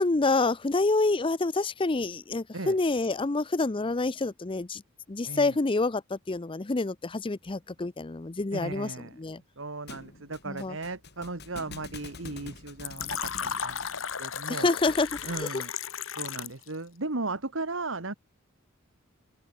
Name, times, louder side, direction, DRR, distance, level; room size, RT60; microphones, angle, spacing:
voice 1, 0.0-4.8 5.1-8.9 9.2-9.4 10.5-10.8 14.5-15.1 15.4-15.5, left 3 dB, 25° left, 0.6 m, -27 dB
voice 2, 5.3-5.6 8.5-9.2 9.6-13.9 14.2-14.7 15.2-15.7 16.2-18.1, right 2 dB, 65° right, 1.9 m, -36 dB
Thump thud, 9.9-15.4, left 3 dB, 55° left, 6.0 m, -46 dB
Fill (with liquid), 12.8-16.7, left 8 dB, 70° left, 1.6 m, -34 dB
open air
head